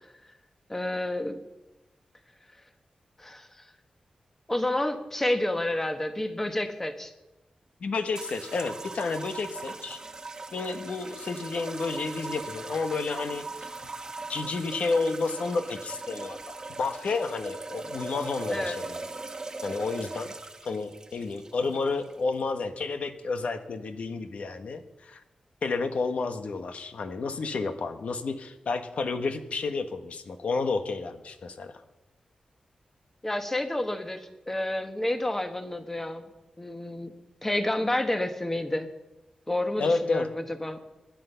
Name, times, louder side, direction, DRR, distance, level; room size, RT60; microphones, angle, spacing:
voice 1, 0.7-1.4 3.2-3.5 4.5-7.1 18.5-18.8 33.2-36.3 36.6-37.1 37.4-38.9 39.5-40.8, left 1 dB, 15° left, 7 dB, 1.3 m, -29 dB
voice 2, 7.8-10.0 10.5-13.4 14.3-19.0 19.6-20.3 20.6-25.2 25.6-31.8 39.8-40.3, left 4 dB, 70° left, 8 dB, 1.3 m, -31 dB
sound 1, 8.1-22.4, right 3 dB, 30° right, 1.1 m, -40 dB
20.0 x 10.5 x 5.7 m, 1.0 s
wide cardioid pair, 135°, 2 cm